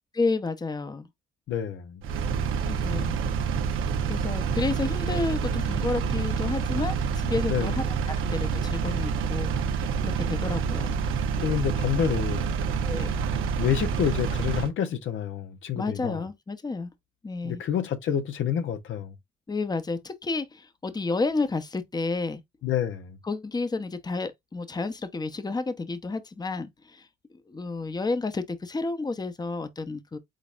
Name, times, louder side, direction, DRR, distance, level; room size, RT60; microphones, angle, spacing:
voice 1, 0.1-1.1 2.7-3.2 4.1-11.0 12.8-13.1 15.7-16.9 17.2-17.6 19.5-22.4 23.2-27.1 27.5-30.2, left 3 dB, 20° left, 0.8 m, -31 dB
voice 2, 1.5-2.0 7.4-7.7 11.4-12.6 13.6-16.3 17.4-19.1 22.6-23.2, left 9 dB, 75° left, 0.9 m, -28 dB
Engine, 2.0-14.7, right 6 dB, 90° right, 0.9 m, -27 dB
5.2 x 4.1 x 2.5 m
cardioid pair, 90°, 20 cm